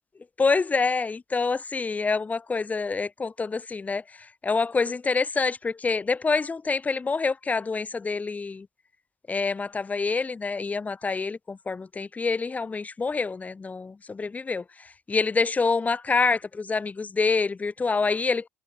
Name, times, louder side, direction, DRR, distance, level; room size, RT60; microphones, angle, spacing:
voice 1, 0.4-4.0 4.4-8.7 9.3-14.6 15.1-18.5, left 4 dB, 20° left, 3.2 m, -26 dB
figure-of-eight pair, 60°, 7 cm